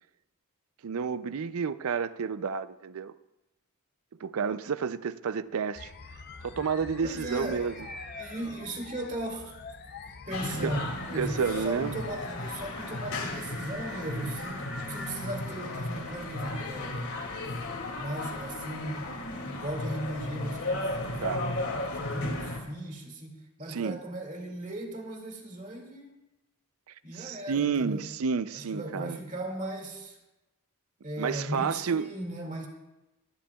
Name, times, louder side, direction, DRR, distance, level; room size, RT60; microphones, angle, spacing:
voice 1, 0.8-3.1 4.2-5.9 6.4-7.9 10.6-10.8 11.2-12.0 21.2-21.5 23.7-24.0 27.1-29.2 31.2-32.1, right 6 dB, 70° right, 0.5 m, -30 dB
sound 1, 5.7-13.4, left 5 dB, 45° left, 0.6 m, -46 dB
sound 2, 6.3-17.2, equal, 5° right, 2.3 m, -48 dB
voice 2, 7.0-7.6 8.2-9.5 10.3-14.6 14.9-17.1 18.0-21.2 21.8-26.1 27.0-28.0 28.5-30.2 31.0-32.7, right 1 dB, 35° right, 2.2 m, -37 dB
sound 3, 10.3-22.6, left 2 dB, 75° left, 2.4 m, -35 dB
23.5 x 10.0 x 2.3 m
head